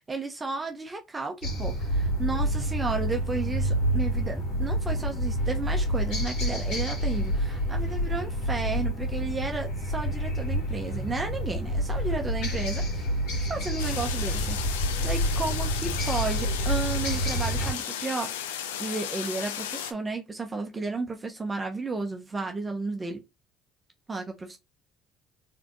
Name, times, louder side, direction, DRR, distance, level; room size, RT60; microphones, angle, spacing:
voice 1, 0.0-13.1 13.5-14.6 15.0-18.3 18.8-23.2 24.1-24.6, right 3 dB, 25° right, 1.0 m, -33 dB
sound 1, 1.4-17.7, equal, 70° left, 2.3 m, -28 dB
sound 2, 13.8-19.9, left 9 dB, 85° left, 0.6 m, -35 dB
4.0 x 3.8 x 3.0 m
hypercardioid pair, 60°, 0 cm